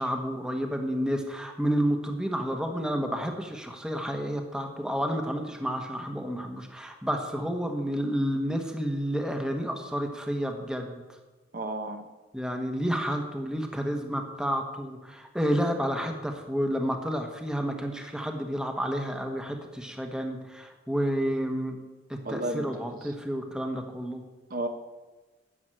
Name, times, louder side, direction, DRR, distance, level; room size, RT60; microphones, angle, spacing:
voice 1, 0.0-11.0 12.3-21.8 22.1-24.2, equal, 5° right, 4 dB, 1.2 m, -30 dB
voice 2, 11.5-12.1 22.2-22.9 24.5-24.7, right 1 dB, 50° right, 6 dB, 1.1 m, -32 dB
11.0 x 7.0 x 9.0 m, 1.2 s
head